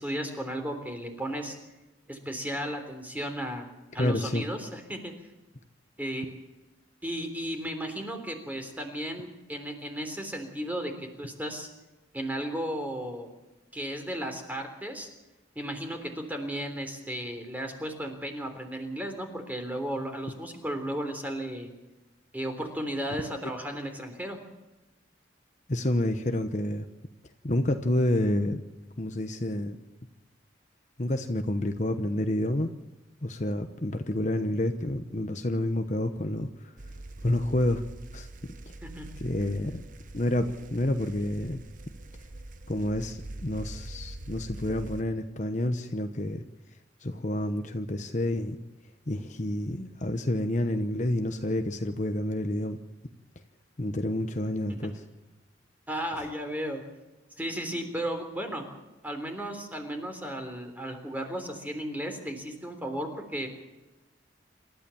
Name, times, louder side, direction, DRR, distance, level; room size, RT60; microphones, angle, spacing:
voice 1, 0.0-1.6 2.1-3.7 3.9-5.1 6.0-6.3 7.0-11.7 12.1-13.3 13.7-15.1 15.6-21.7 22.3-24.4 38.9-39.1 55.9-56.8 57.4-58.7 59.0-63.5, equal, 10° right, 5 dB, 3.5 m, -34 dB
voice 2, 4.0-4.4 25.7-26.9 27.4-28.6 29.0-29.8 31.0-32.7 33.2-36.5 37.2-37.8 38.1-38.3 39.2-39.8 40.1-41.6 42.7-46.4 47.0-48.6 49.1-52.8 53.8-55.0, left 1 dB, 40° left, 7 dB, 1.1 m, -29 dB
sound 1, 36.8-45.0, right 2 dB, 45° right, 0.9 m, -43 dB
27.5 x 13.5 x 7.1 m, 1.1 s
head